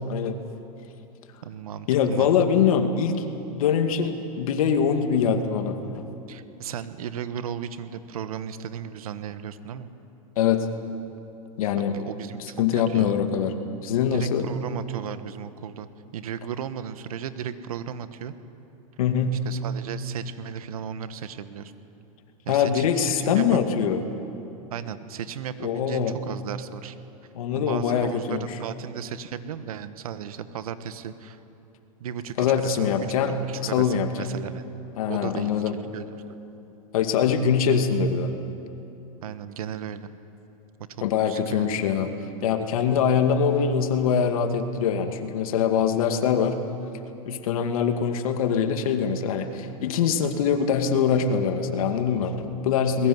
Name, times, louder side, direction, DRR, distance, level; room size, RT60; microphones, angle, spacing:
voice 1, 0.1-0.4 1.9-3.3 3.6-6.0 10.4-10.7 11.6-12.0 12.6-13.5 13.8-14.5 19.0-19.4 22.5-24.0 25.6-26.2 27.3-28.5 32.4-34.3 35.0-35.7 36.9-38.3 41.0-42.1 42.4-46.6 47.3-53.1, left 7 dB, 75° left, 6 dB, 2.3 m, -23 dB
voice 2, 1.4-2.3 6.3-9.9 11.8-13.2 14.1-18.4 19.4-21.7 22.4-23.6 24.7-27.0 27.5-31.4 32.0-33.0 33.2-34.6 35.1-35.6 35.9-36.2 39.2-40.1 40.9-41.7 53.0-53.1, right 9 dB, 85° right, 12 dB, 1.4 m, -35 dB
21.5 x 20.5 x 9.5 m, 2.9 s
hypercardioid pair, 115°, 18 cm